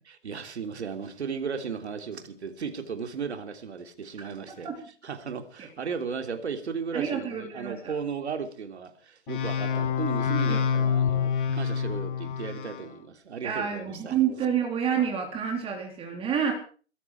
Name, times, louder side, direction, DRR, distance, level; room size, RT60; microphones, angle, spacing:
voice 1, 0.0-4.7 5.0-14.2, right 6 dB, 70° right, 3.3 m, -35 dB
voice 2, 6.9-7.9 10.5-10.6 13.4-16.5, right 8 dB, 15° right, 3.5 m, -28 dB
sound 1, 9.3-12.9, left 7 dB, 45° left, 2.8 m, -27 dB
23.5 x 13.0 x 4.7 m
hypercardioid pair, 135°, 35 cm